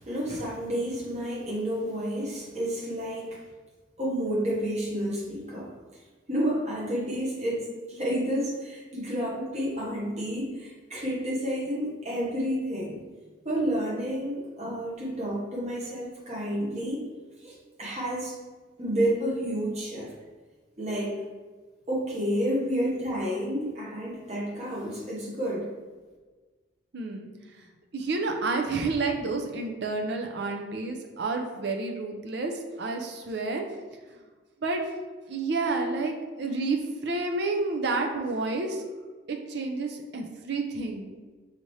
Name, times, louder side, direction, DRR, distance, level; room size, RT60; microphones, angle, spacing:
voice 1, 0.0-3.4 4.0-5.7 6.3-13.0 13.4-17.0 17.4-18.4 18.8-20.1 20.8-21.2 21.9-25.7, equal, 35° right, -5 dB, 1.1 m, -30 dB
voice 2, 26.9-27.3 27.9-33.7 34.6-34.8 35.3-38.8 39.3-41.1, right 3 dB, 60° right, 4 dB, 0.5 m, -30 dB
4.9 x 2.7 x 3.2 m, 1.3 s
head